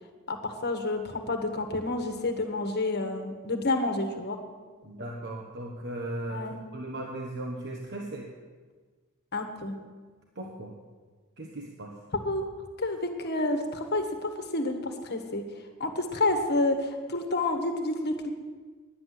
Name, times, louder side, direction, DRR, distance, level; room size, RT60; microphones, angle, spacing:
voice 1, 0.3-4.4 6.3-6.6 9.3-9.8 12.2-12.4 12.8-15.4 15.8-18.3, left 2 dB, 50° left, 5 dB, 1.5 m, -29 dB
voice 2, 4.8-8.3 10.3-10.8 11.4-11.9, right 1 dB, 55° right, 0 dB, 1.2 m, -37 dB
10.0 x 10.0 x 7.7 m, 1.4 s
head